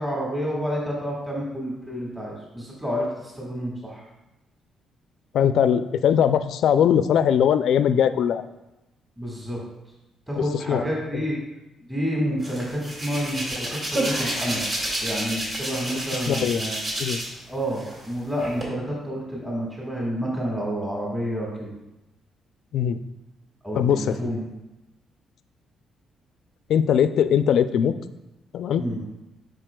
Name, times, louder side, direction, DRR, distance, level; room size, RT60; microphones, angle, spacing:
voice 1, 0.0-3.1 3.4-4.0 9.2-9.6 10.3-11.3 11.8-14.6 15.0-16.8 17.5-21.7 23.6-24.5 28.8-29.0, equal, 10° right, -4 dB, 1.6 m, -29 dB
voice 2, 5.3-8.4 10.7-10.8 11.1-11.2 16.3-16.6 17.0-17.2 22.7-23.0 23.7-24.3 26.7-27.9 28.5-28.8, left 8 dB, 75° left, 11 dB, 0.3 m, -20 dB
Hands, 12.4-17.4 17.7-18.6, right 1 dB, 40° right, 2.5 m, -29 dB
11.0 x 4.9 x 2.3 m, 0.96 s
cardioid pair, 90°, 0 cm